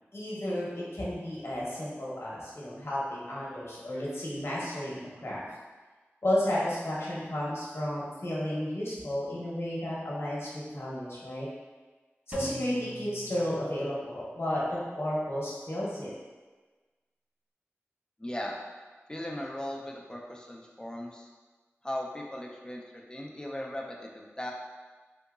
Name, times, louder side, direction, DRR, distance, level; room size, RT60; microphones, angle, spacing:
voice 1, 0.1-5.4 6.2-11.5 12.3-16.1, left 1 dB, 65° left, -6 dB, 0.9 m, -32 dB
Drum, 12.3-14.2, right 1 dB, 30° right, 0.5 m, -45 dB
voice 2, 18.2-18.6 19.1-21.3 21.8-22.8 23.1-24.5, left 1 dB, 15° left, -1 dB, 0.5 m, -38 dB
3.8 x 2.8 x 2.4 m, 1.3 s
wide cardioid pair, 40°, 5 cm